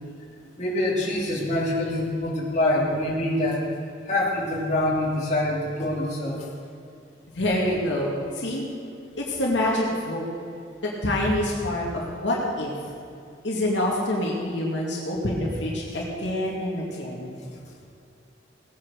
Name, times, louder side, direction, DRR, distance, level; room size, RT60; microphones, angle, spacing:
voice 1, 0.6-3.6 4.0-6.5, left 1 dB, 40° left, -5 dB, 3.4 m, -25 dB
voice 2, 7.3-8.6 9.2-10.2 10.8-11.9 12.2-12.7 13.4-17.4, left 1 dB, 75° left, -3 dB, 2.5 m, -26 dB
18.5 x 8.8 x 6.7 m, 2.6 s
head